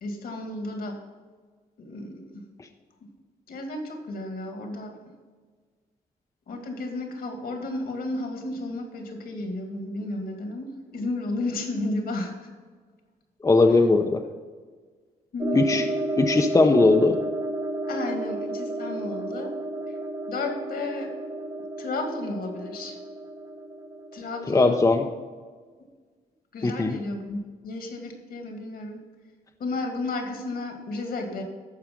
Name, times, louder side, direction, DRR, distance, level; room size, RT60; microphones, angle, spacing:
voice 1, 0.0-1.0 1.8-2.5 3.0-3.1 3.5-5.0 6.5-12.5 15.3-15.9 17.9-19.5 20.3-21.1 21.8-23.0 24.1-24.8 25.8-25.9 26.5-29.0 29.6-31.4, left 2 dB, 70° left, 3 dB, 2.1 m, -33 dB
voice 2, 13.4-14.2 15.5-15.8 16.2-17.2 24.5-25.0 26.6-27.0, left 3 dB, 20° left, 4 dB, 0.7 m, -19 dB
sound 1, 15.4-24.9, right 2 dB, 20° right, 0.9 m, -32 dB
13.5 x 4.8 x 5.2 m, 1.5 s
cardioid pair, 90°, 16 cm